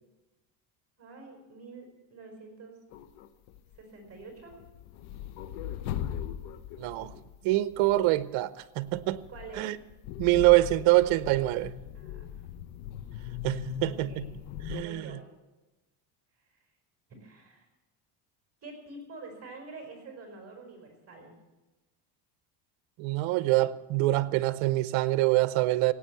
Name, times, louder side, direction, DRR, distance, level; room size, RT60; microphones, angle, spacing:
voice 1, 1.0-2.8 3.8-4.5 9.3-9.7 11.9-12.4 13.7-14.3 14.8-15.2 16.5-16.6 17.1-17.7 18.6-21.4, right 3 dB, 30° right, 3 dB, 4.9 m, -47 dB
sound 1, 2.9-3.8 4.0-8.2 8.9-14.8, left 10 dB, 80° left, 1.1 m, -40 dB
voice 2, 6.8-7.1 7.4-9.2 9.6-9.8 10.2-11.7 13.4-14.2 14.7-15.2 23.0-25.9, right 18 dB, 70° right, 15 dB, 0.9 m, -25 dB
17.5 x 9.3 x 8.1 m, 1.1 s
cardioid pair, 115°, 48 cm